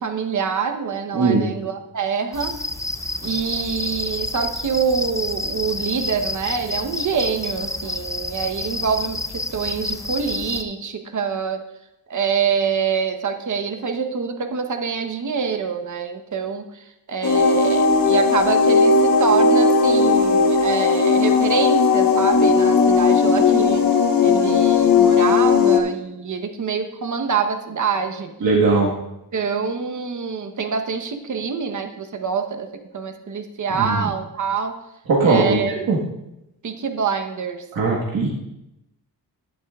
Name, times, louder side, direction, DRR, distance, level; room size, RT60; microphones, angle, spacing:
voice 1, 0.0-2.5 3.2-11.6 12.1-23.9 24.2-28.3 29.3-32.7 32.9-34.8 35.2-36.0 36.6-37.7, right 6 dB, 50° right, 6 dB, 1.0 m, -25 dB
voice 2, 1.1-1.4 28.4-28.9 33.8-34.0 35.1-36.0 37.7-38.3, right 3 dB, 65° right, -3 dB, 1.6 m, -19 dB
sound 1, 2.3-10.6, left 2 dB, 10° left, 0.5 m, -29 dB
sound 2, 17.2-25.8, left 4 dB, 60° left, 1.3 m, -16 dB
12.0 x 11.0 x 2.4 m, 0.88 s
cardioid pair, 90°, 39 cm